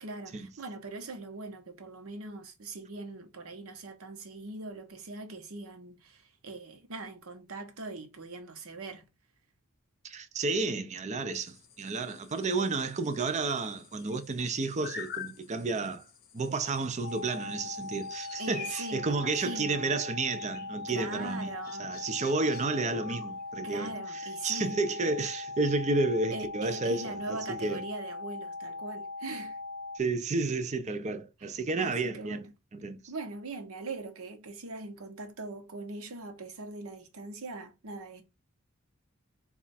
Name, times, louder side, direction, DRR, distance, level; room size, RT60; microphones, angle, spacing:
voice 1, 0.0-9.0 18.4-20.0 20.9-21.9 23.6-24.8 26.3-29.6 31.4-32.5 33.1-38.2, right 2 dB, 70° right, 0.9 m, -41 dB
voice 2, 10.0-16.0 16.3-21.5 21.8-23.9 24.4-27.8 30.0-32.4 32.7-33.0, right 3 dB, 30° right, 0.5 m, -31 dB
sound 1, 11.3-23.5, left 7 dB, 45° left, 0.7 m, -49 dB
sound 2, 17.0-30.0, left 3 dB, 85° left, 0.6 m, -40 dB
4.2 x 2.4 x 4.0 m
head